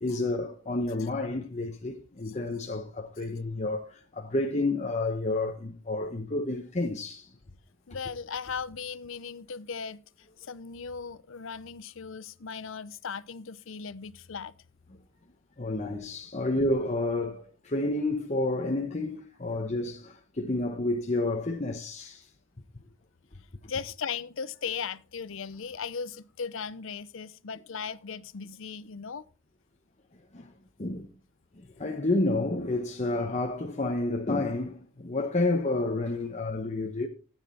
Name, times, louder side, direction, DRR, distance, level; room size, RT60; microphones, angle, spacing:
voice 1, 0.0-7.3 15.6-22.3 30.3-30.5 30.8-31.1 31.6-37.1, left 2 dB, 35° left, 1.0 m, -30 dB
voice 2, 7.9-14.5 23.7-29.2, left 6 dB, 65° left, 0.6 m, -37 dB
13.5 x 9.0 x 4.2 m
head